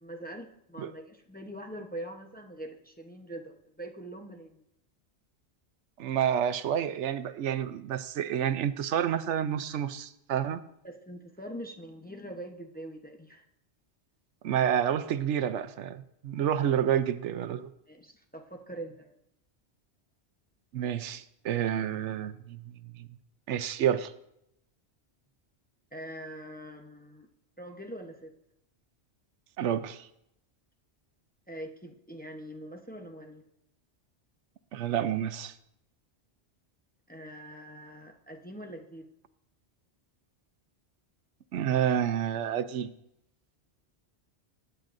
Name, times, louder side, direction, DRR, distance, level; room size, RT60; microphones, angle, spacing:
voice 1, 0.0-4.6 10.8-13.4 17.9-19.1 25.9-27.3 27.6-28.3 31.5-33.4 37.1-39.0, right 1 dB, 10° left, 0.8 m, -43 dB
voice 2, 6.0-10.6 14.4-17.7 20.7-23.1 23.5-24.1 29.6-30.1 34.7-35.5 41.5-42.9, right 9 dB, 90° right, 1.0 m, -29 dB
20.5 x 8.9 x 2.6 m
omnidirectional pair, 1.2 m